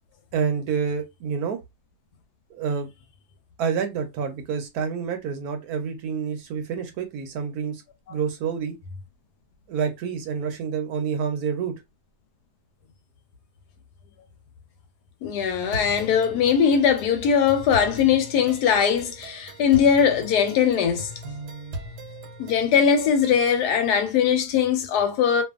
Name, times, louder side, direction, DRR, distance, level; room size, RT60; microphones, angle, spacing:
voice 1, 0.3-1.6 2.5-2.9 3.6-7.8 8.1-8.7 9.7-11.7, right 6 dB, 70° right, 1.1 m, -28 dB
voice 2, 15.2-21.1 22.4-25.4, left 7 dB, 75° left, 1.1 m, -20 dB
sound 1, 15.7-23.7, right 2 dB, 85° right, 1.3 m, -39 dB
2.6 x 2.4 x 2.3 m
omnidirectional pair, 1.8 m